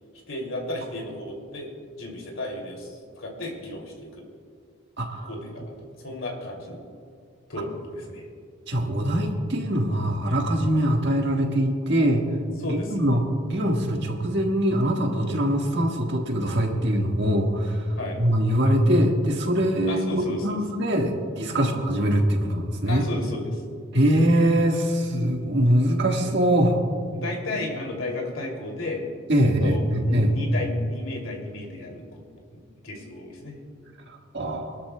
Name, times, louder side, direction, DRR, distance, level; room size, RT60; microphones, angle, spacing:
voice 1, 0.3-1.7 2.0-4.2 5.2-6.8 7.5-8.3 12.6-13.1 18.0-18.2 19.9-20.6 21.5-21.7 22.9-23.6 27.1-29.0 29.4-32.2 32.5-33.6, left 2 dB, 80° left, 0 dB, 2.7 m, -34 dB
voice 2, 5.0-5.3 8.7-12.3 12.7-17.8 18.2-23.0 23.9-26.7 29.3-30.3 34.1-34.8, equal, 55° right, 1 dB, 1.6 m, -23 dB
28.5 x 12.5 x 2.2 m, 2.2 s
head